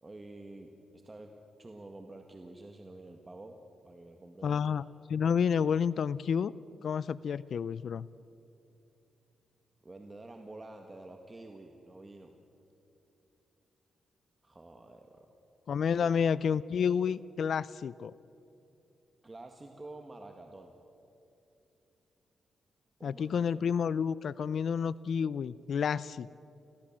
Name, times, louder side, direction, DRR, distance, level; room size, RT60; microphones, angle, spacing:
voice 1, 0.0-1.3 1.6-4.7 9.8-12.4 14.4-15.3 15.8-16.2 19.2-20.8 23.0-23.6, right 2 dB, 25° right, 4 dB, 1.8 m, -49 dB
voice 2, 4.4-4.8 5.1-6.5 6.8-8.1 15.7-18.1 23.0-26.4, left 7 dB, 65° left, 19 dB, 0.4 m, -30 dB
27.0 x 17.0 x 7.5 m, 2.8 s
cardioid pair, 70°, 0 cm